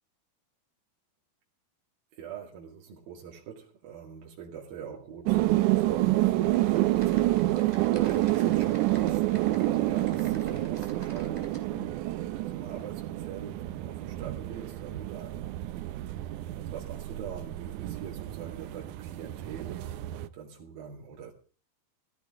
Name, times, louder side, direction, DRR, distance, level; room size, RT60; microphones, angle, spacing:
voice 1, 2.1-5.5 5.7-11.9 12.2-15.5 16.6-19.8 20.3-21.3, right 7 dB, 70° right, 3.9 m, -43 dB
sound 1, 5.3-20.3, right 16 dB, 85° right, 1.7 m, -28 dB
Typing, 6.4-11.6, right 1 dB, 10° right, 2.6 m, -51 dB
15.5 x 15.0 x 3.7 m
omnidirectional pair, 4.5 m